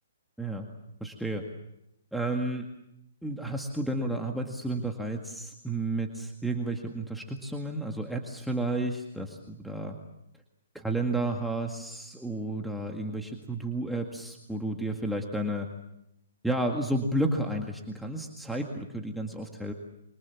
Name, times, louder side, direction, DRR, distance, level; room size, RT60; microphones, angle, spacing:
voice 1, 0.4-0.7 1.0-1.5 2.1-2.7 3.2-10.0 10.7-15.7 16.4-19.7, right 2 dB, ahead, 0 dB, 1.9 m, -32 dB
27.5 x 25.0 x 7.2 m, 0.85 s
hypercardioid pair, 145°, 0 cm